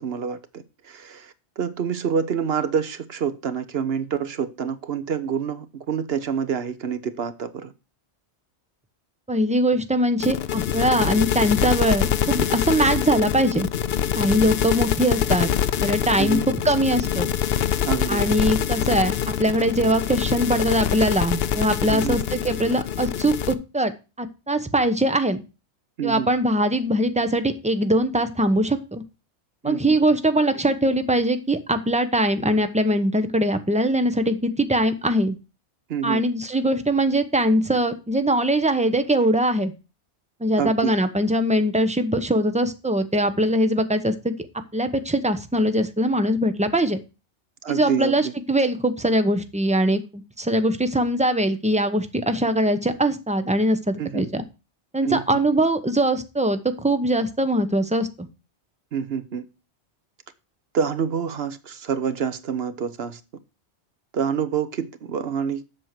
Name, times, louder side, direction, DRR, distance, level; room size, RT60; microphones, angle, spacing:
voice 1, 0.0-7.7 16.2-16.4 17.8-18.2 21.9-22.2 26.0-26.3 29.6-29.8 35.9-36.2 40.6-40.9 47.6-48.3 54.0-54.2 55.0-55.2 58.9-59.4 60.7-63.2 64.1-65.6, right 7 dB, 65° right, 1.1 m, -27 dB
voice 2, 9.3-13.7 14.2-15.5 15.8-17.3 18.1-19.1 19.4-23.9 24.2-25.4 26.0-29.0 29.6-35.4 36.0-39.7 40.4-44.3 44.7-47.0 47.7-54.4 54.9-58.1, right 1 dB, 5° right, 0.8 m, -22 dB
sound 1, 10.2-23.5, left 9 dB, 65° left, 0.8 m, -25 dB
7.8 x 6.4 x 5.9 m
omnidirectional pair, 1.2 m